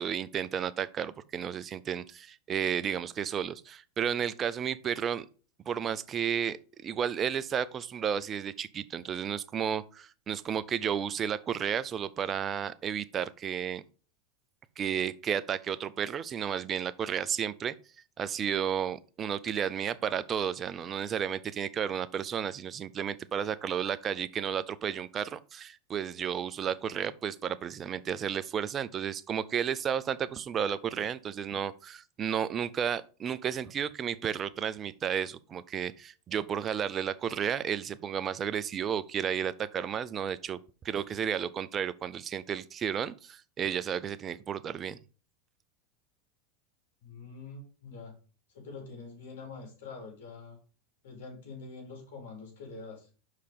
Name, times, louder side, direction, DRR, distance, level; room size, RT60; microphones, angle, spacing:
voice 1, 0.0-5.3 5.7-6.6 6.8-13.8 14.8-17.7 18.2-40.6 40.8-45.0, right 8 dB, 30° right, 0.6 m, -32 dB
voice 2, 47.0-48.1 48.5-50.6 51.0-53.1, left 4 dB, 70° left, 3.9 m, -45 dB
5.8 x 4.9 x 5.4 m
hypercardioid pair, 100°, 0 cm